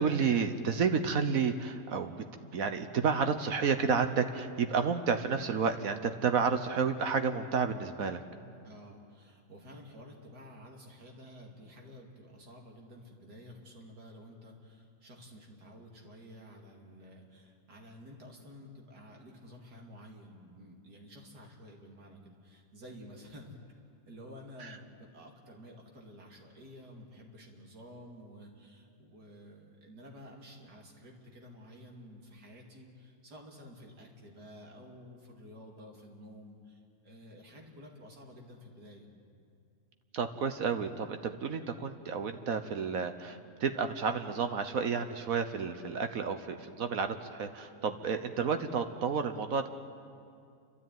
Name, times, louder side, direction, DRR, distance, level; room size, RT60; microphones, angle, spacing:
voice 1, 0.0-2.1 2.4-8.2 24.6-24.8 40.1-49.7, right 5 dB, 65° right, 8 dB, 1.3 m, -31 dB
voice 2, 8.6-23.6 24.1-39.1, equal, 80° right, 1 dB, 3.1 m, -51 dB
29.0 x 13.0 x 9.3 m, 2.3 s
omnidirectional pair, 1.7 m